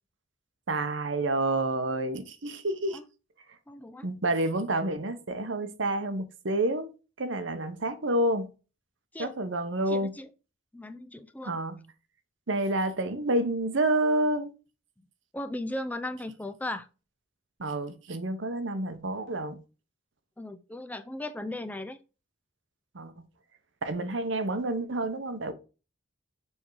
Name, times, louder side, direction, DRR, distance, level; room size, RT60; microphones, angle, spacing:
voice 1, 0.7-3.0 4.0-6.9 7.2-8.5 9.2-10.1 11.4-11.8 12.5-14.5 17.6-19.6 22.9-23.1 23.8-25.5, right 1 dB, 65° right, 0.9 m, -29 dB
voice 2, 3.7-4.1 9.1-9.3 9.9-10.3 10.7-11.6 15.3-16.9 20.4-22.0, left 1 dB, 10° left, 0.4 m, -37 dB
7.1 x 3.5 x 4.7 m
head